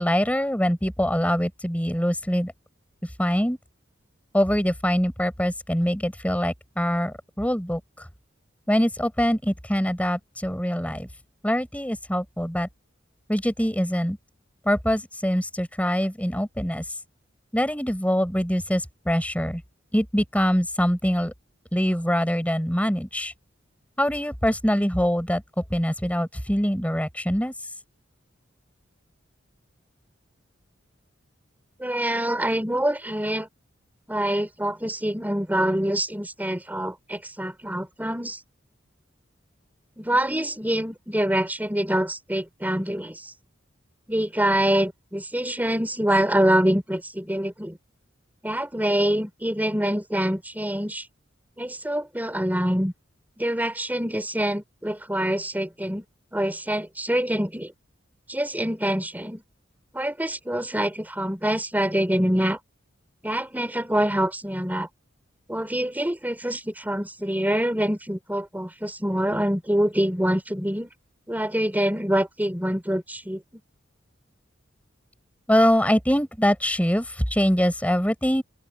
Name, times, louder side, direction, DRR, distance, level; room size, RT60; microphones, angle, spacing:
voice 1, 0.0-2.5 3.2-3.6 4.3-7.8 8.7-11.1 11.4-12.7 13.3-14.2 14.6-16.8 17.5-19.6 19.9-21.3 21.7-23.3 24.0-25.4 25.7-27.5 75.5-78.4, equal, 10° left, 4.3 m, -24 dB
voice 2, 31.8-33.5 34.1-38.4 40.0-43.3 44.1-47.8 48.4-51.0 51.6-52.9 53.4-56.0 56.3-57.7 58.3-59.4 59.9-62.6 63.2-64.9 65.5-70.9 71.3-73.4, right 1 dB, 10° right, 4.4 m, -25 dB
open air
head